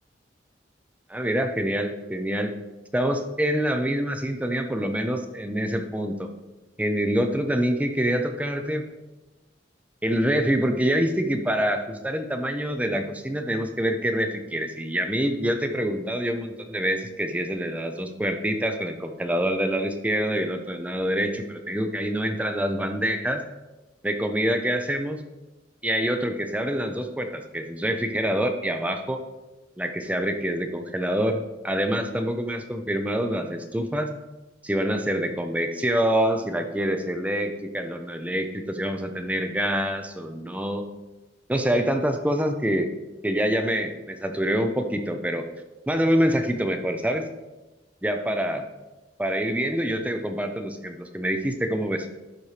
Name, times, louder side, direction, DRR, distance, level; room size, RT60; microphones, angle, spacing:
voice 1, 1.1-2.5 2.9-6.3 6.8-8.9 10.0-23.4 24.0-25.2 25.8-29.2 29.8-34.1 34.6-40.8 41.5-42.9 43.2-45.4 45.9-47.2 48.0-48.7 49.2-52.1, equal, 10° right, 6 dB, 0.4 m, -26 dB
11.5 x 4.2 x 3.2 m, 1.1 s
head